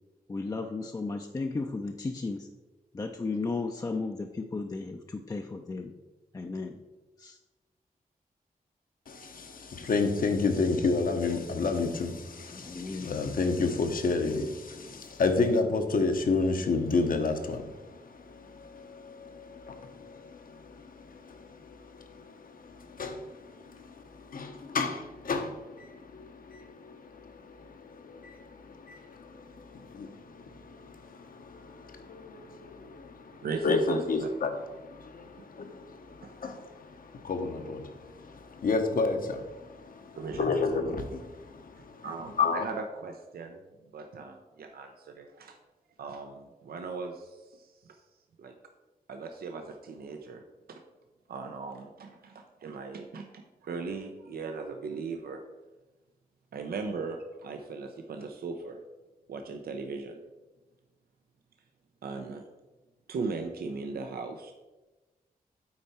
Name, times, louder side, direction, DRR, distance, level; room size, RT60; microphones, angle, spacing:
voice 1, 0.3-2.5 2.9-5.9 6.3-6.8 7.2-7.4 12.5-13.2 14.7-15.0, left 3 dB, 25° left, 4 dB, 0.4 m, -35 dB
voice 2, 9.1-42.0 42.4-42.6, left 4 dB, 65° left, 6 dB, 0.9 m, -31 dB
voice 3, 33.4-34.3 36.2-36.4 40.1-40.6 41.8-43.6 43.9-45.6 46.0-48.0 48.4-48.5 49.1-50.4 50.7-50.8 51.3-55.4 56.5-58.8 59.3-60.2 62.0-62.4 63.1-64.5, right 4 dB, 85° right, 4 dB, 0.6 m, -38 dB
8.6 x 4.4 x 4.2 m, 1.2 s
wide cardioid pair, 100°, 15 cm